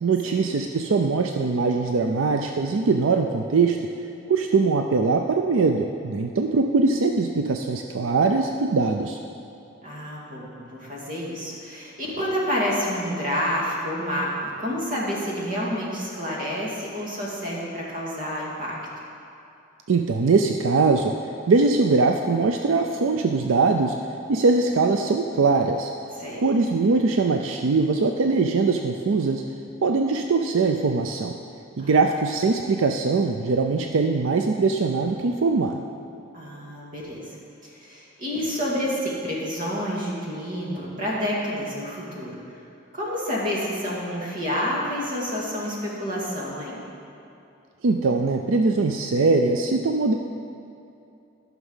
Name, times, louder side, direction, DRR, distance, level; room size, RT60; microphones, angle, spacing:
voice 1, 0.0-3.8 4.3-9.2 19.9-21.1 21.5-24.0 24.3-25.9 26.4-29.4 29.8-31.3 31.8-35.8 47.8-50.1, right 4 dB, 80° right, 4 dB, 0.5 m, -21 dB
voice 2, 9.8-18.8 26.1-26.4 31.8-32.0 36.3-37.2 37.6-42.4 42.9-46.8, equal, 40° right, -5 dB, 2.3 m, -29 dB
13.0 x 6.0 x 5.6 m, 2.7 s
head